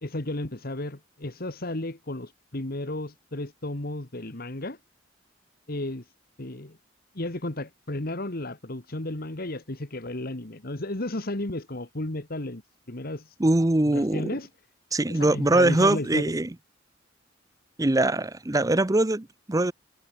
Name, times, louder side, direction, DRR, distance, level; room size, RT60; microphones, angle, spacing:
voice 1, 0.0-4.8 5.7-6.1 6.4-6.8 7.1-12.6 12.9-13.4 13.9-14.5 15.1-16.3, left 1 dB, 50° left, 1.8 m, -33 dB
voice 2, 13.4-14.3 14.9-16.5 17.8-19.7, right 2 dB, 20° right, 0.7 m, -22 dB
head